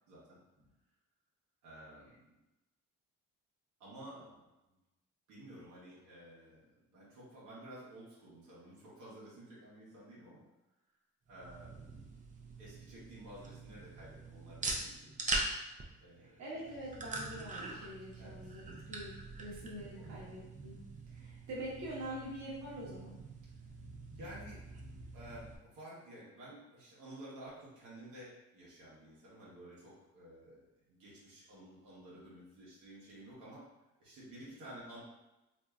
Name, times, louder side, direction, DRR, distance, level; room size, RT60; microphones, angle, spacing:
voice 1, 0.1-0.4 1.6-2.4 3.8-4.8 5.3-10.4 11.3-11.9 12.6-15.1 16.0-16.4 18.2-18.6 19.7-20.2 24.1-24.6 25.1-33.7 34.0-35.0, right 1 dB, 90° right, -7 dB, 1.1 m, -52 dB
sound 1, 11.3-25.6, right 2 dB, 25° right, 0.5 m, -43 dB
voice 2, 16.2-19.1 19.4-20.8 21.1-23.2, right 1 dB, 65° right, -5 dB, 1.1 m, -45 dB
2.9 x 2.6 x 2.3 m, 1.0 s
cardioid pair, 90°, 30 cm